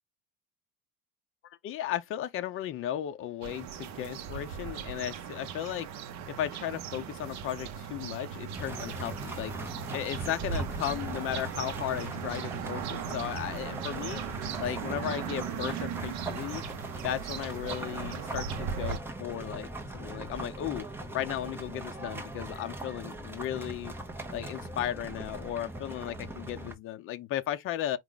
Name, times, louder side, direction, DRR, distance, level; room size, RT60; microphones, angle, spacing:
voice 1, 1.6-5.9 6.3-9.5 9.9-14.2 14.6-16.6 17.0-19.7 19.9-20.9 21.1-23.9 24.3-28.0, left 11 dB, 45° left, 0.6 m, -35 dB
sound 1, 3.4-19.0, right 7 dB, 60° right, 0.8 m, -38 dB
sound 2, 8.5-26.7, right 1 dB, 5° right, 0.9 m, -40 dB
4.8 x 2.4 x 3.8 m
cardioid pair, 155°, 31 cm